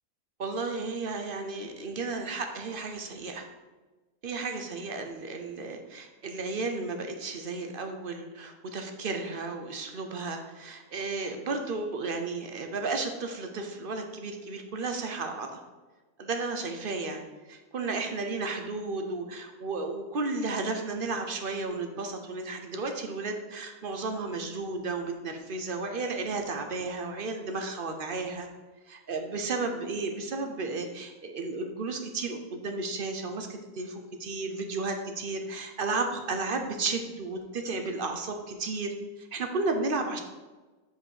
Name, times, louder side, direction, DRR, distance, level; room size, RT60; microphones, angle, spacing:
voice 1, 0.4-3.5 4.2-15.6 16.2-17.2 17.5-28.5 28.9-40.2, right 3 dB, 50° right, 5 dB, 0.7 m, -33 dB
5.5 x 5.0 x 6.4 m, 1.2 s
omnidirectional pair, 1.7 m